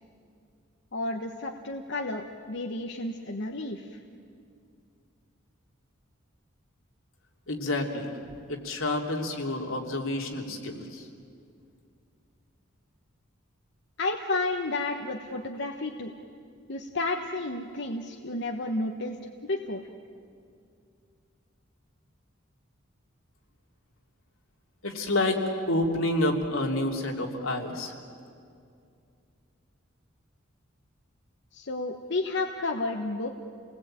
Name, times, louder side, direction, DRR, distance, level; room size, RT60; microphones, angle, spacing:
voice 1, 0.9-3.8 14.0-16.2 16.7-19.2 19.4-19.8 31.5-33.3, left 2 dB, 60° left, 3 dB, 1.2 m, -31 dB
voice 2, 7.5-8.1 8.5-11.1 24.8-27.9, left 1 dB, 80° left, 1 dB, 3.0 m, -29 dB
29.5 x 19.5 x 8.9 m, 2.4 s
head